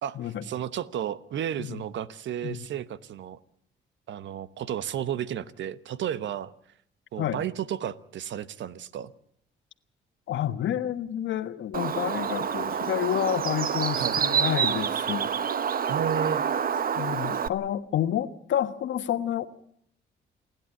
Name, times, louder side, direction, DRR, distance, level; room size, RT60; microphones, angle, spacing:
voice 1, 0.0-3.4 4.1-6.5 7.1-9.1 14.0-14.2 15.9-16.4, right 9 dB, 70° right, 16 dB, 1.1 m, -32 dB
voice 2, 10.3-15.2 16.9-19.5, left 11 dB, 70° left, 11 dB, 1.4 m, -29 dB
Bird, 11.7-17.5, right 7 dB, 45° right, 1.0 m, -27 dB
28.5 x 11.0 x 9.7 m, 0.68 s
cardioid pair, 90°, 20 cm